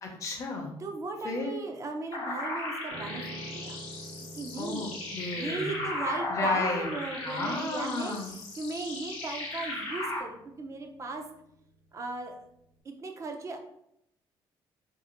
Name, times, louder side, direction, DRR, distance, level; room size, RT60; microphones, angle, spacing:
voice 1, 0.0-0.7 1.2-1.5 4.6-5.8 6.3-6.9 7.2-8.3, left 3 dB, 35° left, 0 dB, 0.6 m, -33 dB
voice 2, 0.8-3.8 4.3-11.2 11.9-12.4 12.8-13.6, right 3 dB, 35° right, 4 dB, 0.5 m, -37 dB
sound 1, 2.1-10.2, left 2 dB, 75° left, 0.7 m, -36 dB
Piano, 2.9-12.3 12.5-12.8, right 1 dB, 85° right, 1.0 m, -49 dB
2.6 x 2.4 x 2.8 m, 0.76 s
cardioid pair, 115°, 9 cm